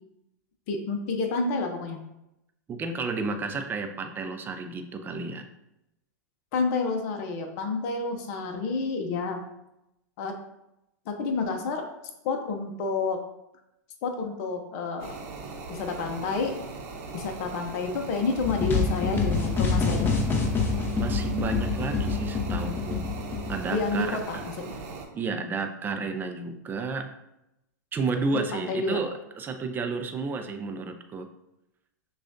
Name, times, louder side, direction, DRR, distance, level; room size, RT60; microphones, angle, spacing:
voice 1, 0.7-2.0 6.5-9.4 10.2-10.3 11.1-11.8 12.2-13.2 14.0-15.2 15.7-16.6 17.1-20.1 23.7-24.8 28.3-29.0, left 4 dB, 50° left, 3 dB, 0.7 m, -29 dB
voice 2, 2.7-5.5 20.9-23.0 23.5-24.4 25.1-27.1 27.9-31.3, right 4 dB, 20° right, 6 dB, 0.5 m, -32 dB
sound 1, 15.0-25.0, right 4 dB, 55° right, 0.8 m, -39 dB
sound 2, 18.4-24.0, left 4 dB, 20° left, 0.9 m, -26 dB
6.1 x 2.4 x 2.6 m, 0.86 s
hypercardioid pair, 110°, 10 cm